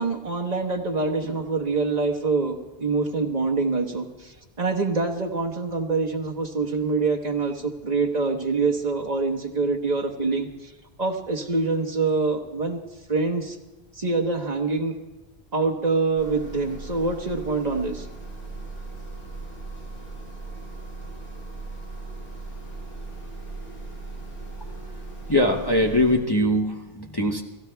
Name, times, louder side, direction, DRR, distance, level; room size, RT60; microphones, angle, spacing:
voice 1, 0.0-10.7 11.0-12.8 13.1-13.6 14.0-14.9 15.5-18.1, right 3 dB, 40° right, 3 dB, 1.2 m, -25 dB
sound 1, 16.2-26.2, right 3 dB, 60° left, 5.4 m, -38 dB
voice 2, 25.3-27.4, left 1 dB, 25° left, 1 dB, 0.8 m, -22 dB
29.5 x 17.0 x 2.3 m, 1.1 s
omnidirectional pair, 1.1 m